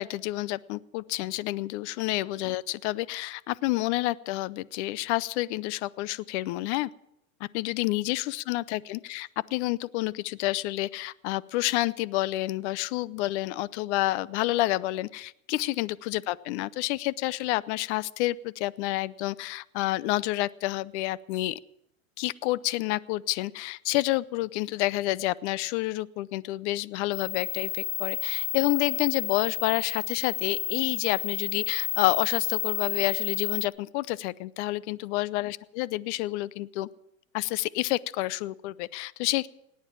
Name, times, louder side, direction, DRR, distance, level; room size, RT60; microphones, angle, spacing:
voice 1, 0.0-6.9 7.4-21.6 22.2-36.9 37.3-39.5, left 18 dB, 55° left, 21 dB, 0.7 m, -29 dB
sound 1, 27.1-33.7, left 13 dB, 80° left, 1.2 m, -31 dB
18.5 x 9.7 x 7.1 m, 0.81 s
hypercardioid pair, 110°, 41 cm